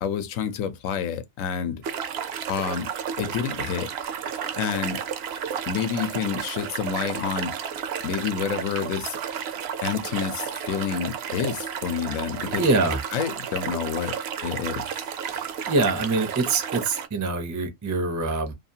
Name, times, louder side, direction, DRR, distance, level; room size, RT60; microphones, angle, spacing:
voice 1, 0.0-1.8 2.5-2.9 3.2-3.9 4.6-5.0 5.7-7.5 8.0-9.2 9.8-12.6 13.1-14.9, left 7 dB, 80° left, 1.0 m, -28 dB
sound 1, 1.8-17.1, right 8 dB, 65° right, 0.7 m, -32 dB
voice 2, 12.6-13.0 15.3-18.5, right 3 dB, 30° right, 0.3 m, -25 dB
2.8 x 2.4 x 2.7 m
omnidirectional pair, 1.4 m